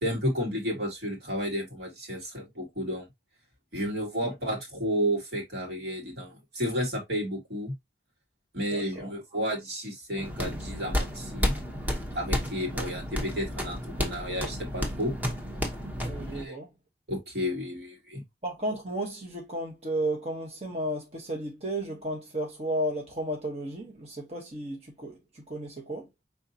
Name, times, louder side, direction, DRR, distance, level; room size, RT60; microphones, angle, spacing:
voice 1, 0.0-3.1 3.7-7.7 8.5-11.5 12.1-15.1 16.3-16.6 17.1-18.2, equal, 70° right, 2.3 m, -32 dB
voice 2, 8.7-9.1 16.0-16.7 18.4-26.1, right 1 dB, 35° right, 1.1 m, -33 dB
sound 1, 10.2-16.4, equal, 10° right, 0.9 m, -32 dB
5.5 x 3.5 x 2.7 m
head